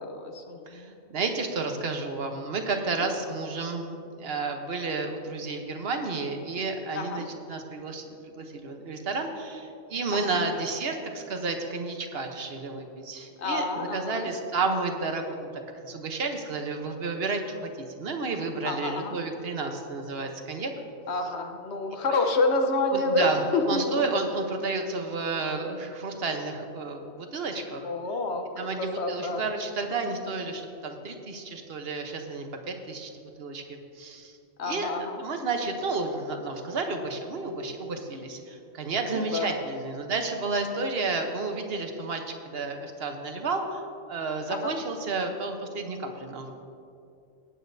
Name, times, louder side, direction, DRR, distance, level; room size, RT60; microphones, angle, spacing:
voice 1, 0.0-0.9 2.9-3.1 6.9-7.3 10.1-10.4 13.4-14.3 18.6-19.2 21.1-24.0 27.8-28.4 28.8-29.4 34.6-35.2 39.1-39.6 44.5-44.8, left 2 dB, 60° left, 5 dB, 1.1 m, -28 dB
voice 2, 1.1-13.6 13.9-15.5 15.8-17.7 18.0-20.7 22.1-22.2 22.9-27.9 28.6-33.1 33.4-34.3 34.6-34.9 35.2-43.8 44.1-46.5, right 3 dB, 55° right, 5 dB, 1.1 m, -31 dB
18.0 x 8.6 x 2.7 m, 2.6 s
omnidirectional pair, 1.3 m